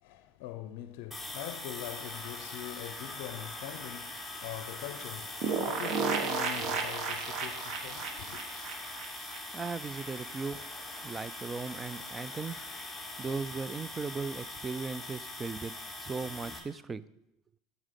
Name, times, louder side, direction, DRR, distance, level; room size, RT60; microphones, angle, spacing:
voice 1, 0.0-8.4, left 12 dB, 65° left, 0.5 m, -43 dB
sound 1, 1.1-16.6, left 2 dB, 5° right, 1.8 m, -42 dB
sound 2, 1.8-15.5, left 2 dB, 10° left, 2.6 m, -53 dB
sound 3, 5.4-10.0 10.3-10.4 10.6-10.7, right 5 dB, 50° right, 1.1 m, -33 dB
voice 2, 9.5-10.6 11.0-12.6 13.2-17.0, right 4 dB, 20° right, 0.4 m, -37 dB
7.3 x 7.3 x 5.2 m
hypercardioid pair, 100°, 0 cm